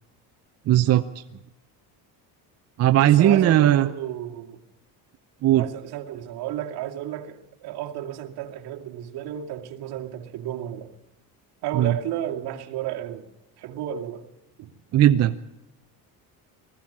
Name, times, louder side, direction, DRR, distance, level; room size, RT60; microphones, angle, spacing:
voice 1, 0.7-1.2 2.8-3.9 5.4-5.6 11.7-11.9 14.9-15.3, right 12 dB, 40° right, 0.7 m, -18 dB
voice 2, 3.0-4.6 5.6-10.9 11.6-13.3 13.6-14.3 14.6-14.7, right 10 dB, 70° right, 2.4 m, -32 dB
20.0 x 15.0 x 8.7 m
cardioid pair, 160°, 40 cm